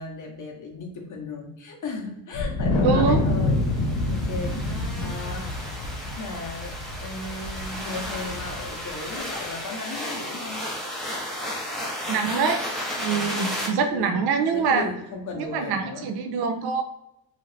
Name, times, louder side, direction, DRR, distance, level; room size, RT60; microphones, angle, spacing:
voice 1, 0.0-5.5 6.2-10.6 13.0-13.5 13.9-14.2 14.5-16.1, left 3 dB, 40° left, 1 dB, 0.8 m, -36 dB
Wind, 2.3-8.9, left 2 dB, 85° left, 0.8 m, -27 dB
voice 2, 2.8-3.2 12.1-12.6 13.0-14.9 15.4-16.8, right 5 dB, 60° right, 6 dB, 0.5 m, -24 dB
sound 1, 3.2-13.7, equal, ahead, 0.6 m, -34 dB
2.9 x 2.5 x 3.0 m, 0.86 s
cardioid pair, 125°, 46 cm